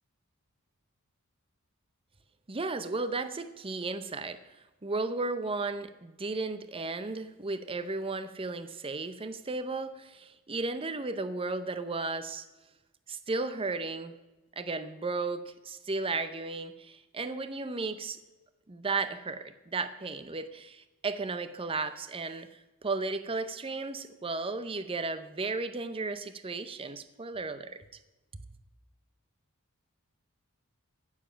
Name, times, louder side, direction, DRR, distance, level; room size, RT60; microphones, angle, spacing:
voice 1, 2.5-4.4 4.8-12.4 13.1-14.2 14.6-18.2 18.7-22.5 22.8-27.8, right 3 dB, 25° right, 11 dB, 0.6 m, -34 dB
16.0 x 7.3 x 5.7 m, 1.1 s
head